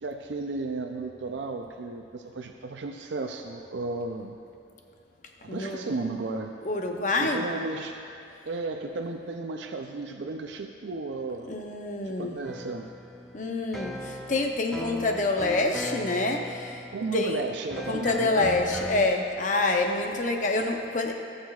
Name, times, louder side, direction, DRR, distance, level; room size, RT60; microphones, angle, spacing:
voice 1, 0.0-4.4 5.4-6.5 7.2-8.0 8.5-11.5 12.0-12.9 16.7-18.6 18.9-19.1, right 3 dB, 80° right, 3 dB, 0.5 m, -34 dB
voice 2, 5.5-5.8 6.7-7.4 11.5-12.3 13.3-16.7 17.1-17.4 17.9-21.1, left 2 dB, 45° left, 3 dB, 0.7 m, -27 dB
sound 1, 12.4-19.0, left 1 dB, ahead, 0.5 m, -38 dB
18.0 x 6.4 x 2.4 m, 2.7 s
head